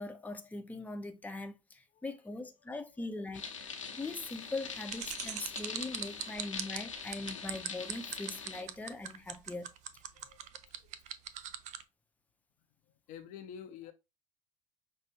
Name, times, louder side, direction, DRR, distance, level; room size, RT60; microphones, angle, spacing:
voice 1, 0.0-9.7, left 2 dB, 10° left, 0.7 m, -41 dB
voice 2, 2.7-3.2 6.3-6.5 6.8-7.0 7.7-7.8 10.1-11.0 12.9-13.9, left 8 dB, 55° left, 0.6 m, -51 dB
sound 1, 3.3-8.6, left 6 dB, 85° left, 0.8 m, -43 dB
sound 2, 4.9-11.8, right 11 dB, 50° right, 0.5 m, -40 dB
5.7 x 2.6 x 3.1 m
figure-of-eight pair, 60°, 16 cm